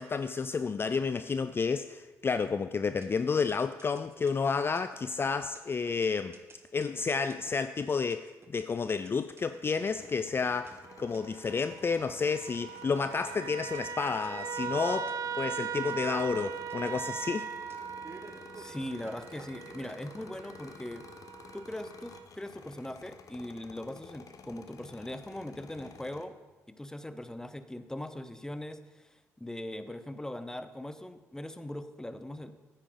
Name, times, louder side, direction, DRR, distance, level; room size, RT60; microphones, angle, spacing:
voice 1, 0.0-6.3 6.7-17.5, left 5 dB, 35° left, 11 dB, 0.4 m, -31 dB
sound 1, 2.9-20.0, right 3 dB, 35° right, 1.3 m, -54 dB
sound 2, 9.7-26.2, left 5 dB, 55° left, 0.9 m, -53 dB
sound 3, 10.8-22.3, right 7 dB, 60° right, 0.5 m, -40 dB
voice 2, 18.6-21.0 21.5-26.3 26.7-32.6, left 1 dB, 10° left, 10 dB, 0.8 m, -40 dB
9.6 x 8.9 x 3.9 m, 1.2 s
hypercardioid pair, 50°, 7 cm